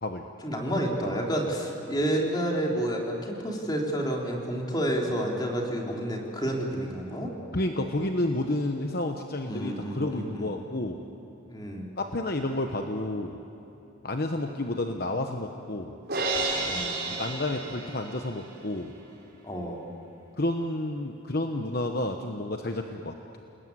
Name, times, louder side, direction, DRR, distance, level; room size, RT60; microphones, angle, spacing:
voice 1, 0.4-7.3 9.5-10.5 11.5-11.9 16.6-16.9 19.4-19.8, right 1 dB, 20° left, -1 dB, 3.4 m, -30 dB
voice 2, 7.5-11.0 12.0-13.4 14.0-15.9 17.2-18.9 20.4-23.2, left 1 dB, 45° left, 5 dB, 1.0 m, -30 dB
Crash cymbal, 16.1-18.4, right 2 dB, 50° right, 5.4 m, -31 dB
29.0 x 20.5 x 9.6 m, 2.9 s
head